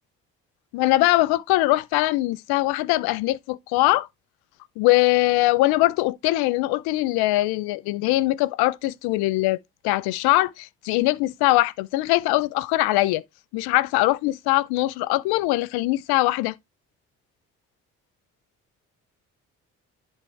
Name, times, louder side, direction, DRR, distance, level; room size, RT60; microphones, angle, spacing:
voice 1, 0.7-4.1 4.8-13.2 13.5-16.5, left 18 dB, 85° left, 0.6 m, -22 dB
10.5 x 3.6 x 4.4 m
supercardioid pair, 55°, 37 cm